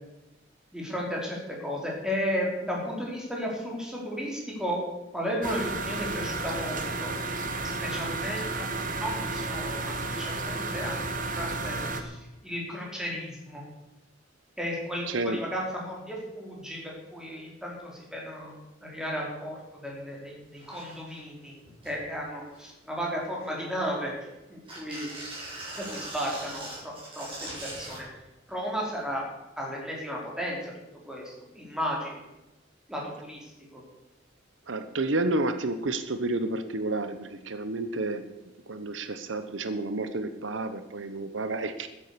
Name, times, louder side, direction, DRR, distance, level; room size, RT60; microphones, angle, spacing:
voice 1, 0.7-4.8 5.1-7.1 7.6-8.7 9.0-11.0 11.3-13.6 14.6-18.5 18.8-21.5 21.8-24.1 24.5-25.1 25.8-27.3 27.6-28.1 28.5-29.2 29.6-30.7 31.1-32.1 32.9-33.4 33.7-33.8, equal, 5° right, -3 dB, 4.5 m, -34 dB
sound 1, 5.4-12.0, right 3 dB, 45° right, 1.5 m, -32 dB
voice 2, 15.1-15.4 34.7-38.3 38.7-41.9, right 2 dB, 80° right, 10 dB, 1.0 m, -30 dB
sound 2, 20.2-20.3 20.6-21.2 21.6-22.0 22.5-22.9 23.4-24.2 24.7-28.1 29.1-29.2, right 1 dB, 30° right, 6.8 m, -41 dB
13.5 x 10.0 x 6.8 m, 1.0 s
head